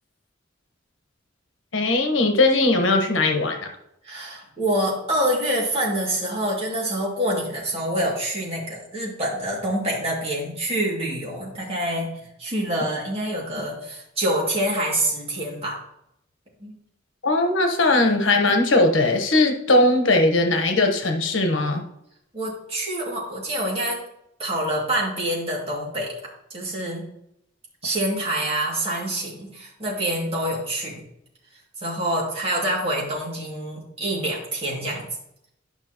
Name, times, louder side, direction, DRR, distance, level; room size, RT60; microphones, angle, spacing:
voice 1, 1.7-3.7 17.2-21.8, left 2 dB, 80° left, 5 dB, 1.2 m, -19 dB
voice 2, 4.0-12.1 12.4-15.8 16.6-16.7 22.3-24.0 24.4-27.1 27.8-31.0 31.8-35.1, right 1 dB, 30° right, -4 dB, 2.4 m, -26 dB
12.0 x 5.7 x 3.0 m, 0.79 s
head